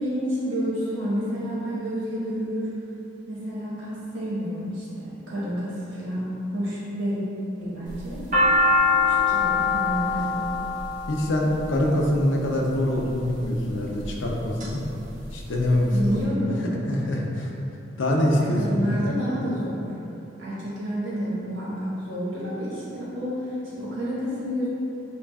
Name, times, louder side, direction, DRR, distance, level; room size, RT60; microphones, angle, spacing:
voice 1, 0.0-2.7 3.3-6.3 6.5-7.2 7.6-8.2 8.9-10.5 15.9-16.7 18.4-19.8 20.4-24.7, equal, 80° right, -8 dB, 1.3 m, -29 dB
sound 1, 7.9-12.1 12.9-13.4 14.0-14.7 15.0-15.1 15.3-16.1, left 3 dB, 40° right, 0.8 m, -23 dB
voice 2, 11.1-14.8 15.3-16.2 16.9-17.5 18.0-19.1, left 1 dB, 85° left, -1 dB, 0.6 m, -24 dB
6.9 x 2.5 x 2.3 m, 2.9 s
head